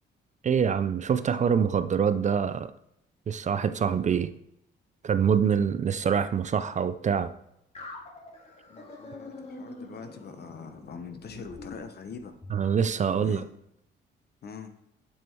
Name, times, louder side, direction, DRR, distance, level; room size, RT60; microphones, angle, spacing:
voice 1, 0.4-2.7 3.3-4.3 5.0-7.3 12.5-13.4, right 7 dB, 35° right, 0.4 m, -25 dB
sound 1, 7.7-12.7, left 2 dB, 35° left, 1.9 m, -45 dB
voice 2, 8.7-12.3 13.2-13.4 14.4-14.7, left 6 dB, 55° left, 1.0 m, -43 dB
7.0 x 6.2 x 4.6 m
cardioid pair, 90°, 20 cm